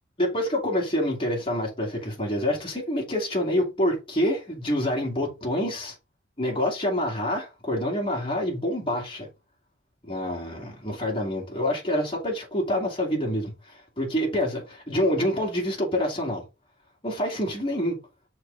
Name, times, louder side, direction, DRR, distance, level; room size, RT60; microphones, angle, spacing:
voice 1, 0.2-6.0 6.4-9.3 10.0-16.4 17.0-18.0, left 1 dB, 25° left, 2.4 m, -27 dB
6.5 x 4.1 x 3.9 m
head